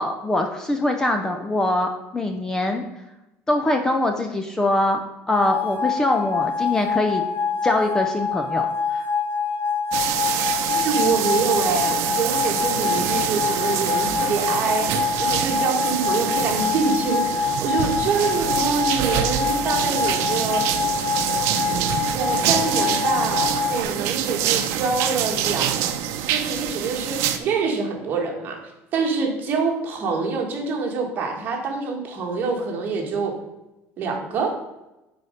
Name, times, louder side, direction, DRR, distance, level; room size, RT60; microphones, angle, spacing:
voice 1, 0.0-2.8 3.5-5.0 5.3-7.2 7.6-9.1, left 1 dB, 10° left, 5 dB, 0.5 m, -23 dB
sound 1, 5.3-23.8, left 6 dB, 45° left, 1.2 m, -25 dB
sound 2, 9.9-27.4, right 10 dB, 60° right, 0.7 m, -25 dB
voice 2, 10.7-21.0 22.1-25.7 26.3-33.3 34.0-34.5, right 4 dB, 35° right, 2 dB, 1.5 m, -26 dB
9.3 x 4.2 x 5.0 m, 0.97 s
cardioid pair, 175°, 5 cm